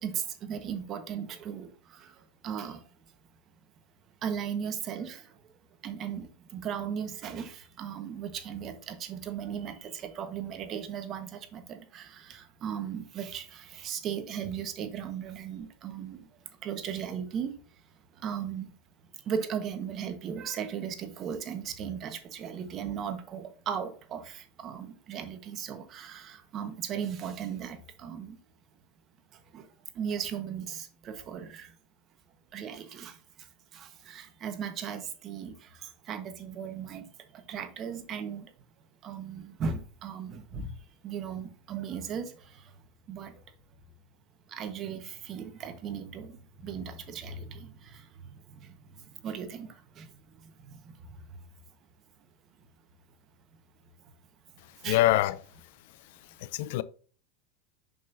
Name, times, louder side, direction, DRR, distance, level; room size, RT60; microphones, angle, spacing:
voice 1, 0.0-2.1 2.4-2.8 4.2-5.3 5.8-16.3 16.6-17.5 18.2-18.7 19.3-28.4 29.5-29.7 29.9-31.7 32.5-33.2 33.7-37.0 37.3-38.5 39.0-40.7 41.0-42.6 43.1-43.4 44.5-46.4 46.6-48.1 48.6-48.8 49.2-50.1 54.8-55.0, right 7 dB, 40° right, 1.3 m, -37 dB
voice 2, 54.8-55.4 56.0-56.8, left 15 dB, 65° left, 0.5 m, -26 dB
7.5 x 5.5 x 2.7 m
hypercardioid pair, 105°, 0 cm